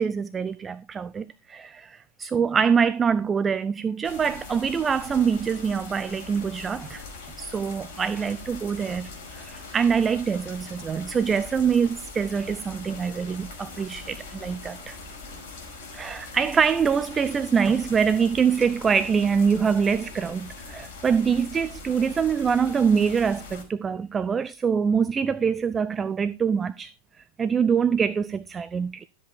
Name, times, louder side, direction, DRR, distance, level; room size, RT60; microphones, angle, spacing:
voice 1, 0.0-7.0 7.4-15.0 15.9-26.9 27.4-29.0, right 6 dB, 20° right, 0.5 m, -24 dB
sound 1, 4.0-23.6, left 3 dB, 50° left, 5.1 m, -42 dB
13.0 x 7.8 x 4.1 m
figure-of-eight pair, 90°, 0 cm